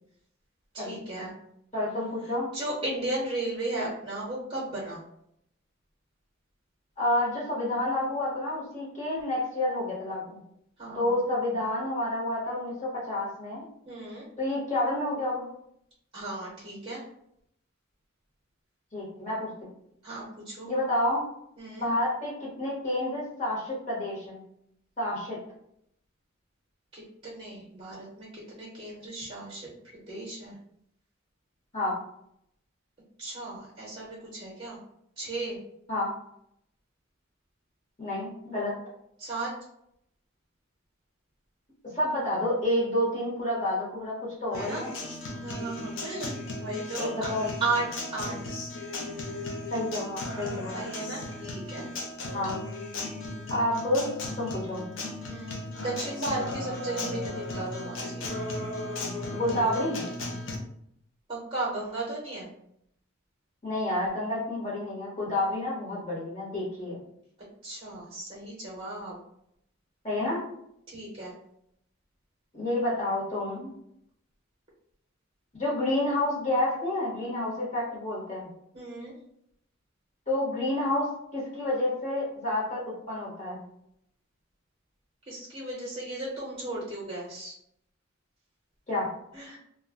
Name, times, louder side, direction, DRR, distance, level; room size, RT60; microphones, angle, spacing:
voice 1, 0.7-1.3 2.5-5.0 10.8-11.1 13.9-14.2 16.1-17.0 20.0-20.7 21.6-21.9 26.9-29.7 30.0-30.6 33.2-34.8 35.2-35.6 39.2-39.5 44.5-44.8 45.4-47.3 47.6-47.9 48.1-48.6 50.7-51.9 55.3-58.3 61.3-62.5 67.6-69.2 70.9-71.3 78.7-79.1 85.3-87.5 89.3-89.6, right 2 dB, 25° right, -5 dB, 0.7 m, -35 dB
voice 2, 1.7-2.5 7.0-10.4 10.9-13.6 14.4-15.5 18.9-19.7 20.6-21.2 21.8-24.4 25.0-25.4 31.7-31.9 35.9-36.1 38.0-38.8 41.9-44.9 47.0-47.5 49.7-50.8 52.3-52.5 53.5-54.9 59.3-60.0 63.6-67.0 70.0-70.4 72.5-73.7 75.6-78.5 80.3-83.6 88.9-89.1, left 1 dB, 35° left, -6 dB, 1.0 m, -29 dB
Acoustic guitar, 44.5-60.6, left 2 dB, 70° left, 0.6 m, -36 dB
2.2 x 2.1 x 3.5 m, 0.73 s
head